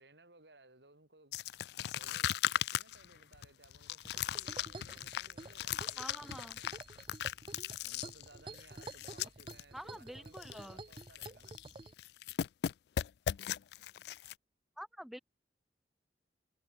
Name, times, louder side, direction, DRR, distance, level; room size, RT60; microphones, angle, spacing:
voice 1, 0.0-1.4 1.9-6.8 7.8-11.5, right 2 dB, 75° right, 4.9 m, -61 dB
sound 1, 1.3-9.6 9.9-10.0 10.3-10.7 10.9-11.7 12.0-14.3, left 10 dB, 65° left, 0.3 m, -38 dB
sound 2, 4.0-11.9, right 2 dB, 30° right, 1.0 m, -50 dB
voice 2, 6.0-6.6 9.7-10.8 14.8-15.2, equal, ahead, 1.3 m, -47 dB
head